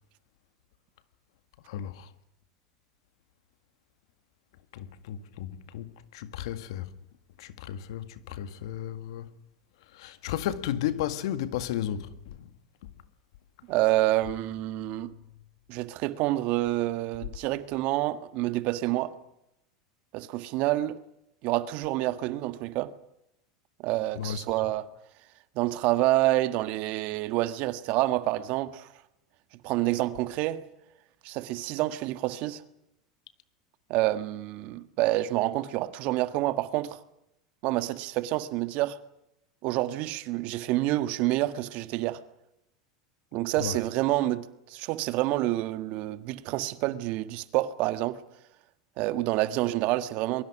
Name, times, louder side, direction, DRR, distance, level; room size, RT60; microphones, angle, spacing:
voice 1, 1.7-2.1 4.7-6.9 7.4-9.3 9.9-12.5 14.7-15.0 24.1-24.7 43.6-43.8, left 11 dB, 75° left, 1.8 m, -34 dB
voice 2, 13.7-15.1 15.7-19.1 20.1-21.0 21.4-22.9 23.8-24.9 25.6-28.9 29.6-30.6 31.2-32.6 33.9-37.0 37.6-39.0 39.6-42.2 43.3-48.2 49.0-50.4, right 16 dB, 55° right, 1.6 m, -28 dB
27.5 x 23.0 x 6.2 m
hypercardioid pair, 100°, 3 cm